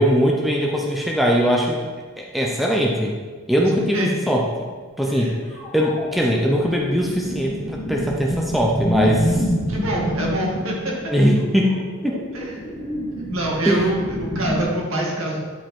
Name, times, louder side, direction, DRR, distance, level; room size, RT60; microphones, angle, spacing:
voice 1, 0.0-1.8 2.2-3.1 3.5-4.5 5.0-5.3 5.7-9.5 11.1-12.2 13.7-13.8, equal, ahead, -1 dB, 0.6 m, -20 dB
sound 1, 5.5-14.6, equal, 15° left, 2.3 m, -28 dB
voice 2, 9.7-10.9 12.3-12.6 13.3-15.4, right 1 dB, 70° right, -3 dB, 2.1 m, -25 dB
10.0 x 5.1 x 4.4 m, 1.5 s
head